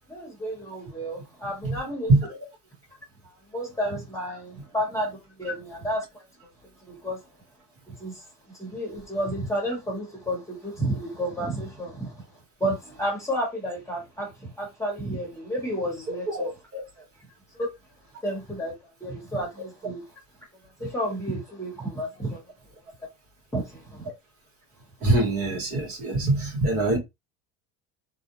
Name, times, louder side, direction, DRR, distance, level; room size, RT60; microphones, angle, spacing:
voice 1, 0.1-2.1 3.2-6.0 6.9-7.2 8.0-8.2 8.5-12.2 12.6-16.5 17.5-17.7 18.2-18.7 19.0-20.0 20.8-22.4 23.5-24.1, equal, 10° left, 1.1 m, -31 dB
voice 2, 16.3-16.8 25.0-27.0, right 2 dB, 35° right, 1.1 m, -23 dB
2.5 x 2.0 x 2.9 m
cardioid pair, 145°, 37 cm